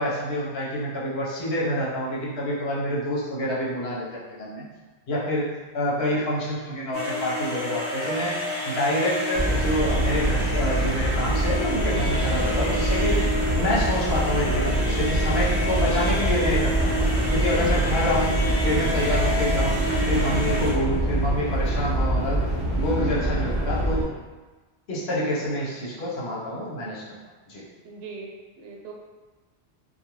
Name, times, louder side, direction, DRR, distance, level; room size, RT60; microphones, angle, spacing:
voice 1, 0.0-4.6 5.1-5.5 5.7-8.4 8.6-13.2 13.5-17.0 17.3-18.3 18.6-19.7 20.1-22.4 22.7-24.1 24.9-27.0 27.5-27.6, left 1 dB, 70° left, -6 dB, 1.0 m, -27 dB
sound 1, 6.9-20.7, equal, 15° left, 0.8 m, -30 dB
sound 2, 9.3-24.0, right 1 dB, 35° right, 0.5 m, -25 dB
voice 2, 20.3-20.7 27.8-28.9, right 3 dB, 65° right, -1 dB, 0.8 m, -40 dB
2.4 x 2.2 x 3.0 m, 1.2 s
omnidirectional pair, 1.1 m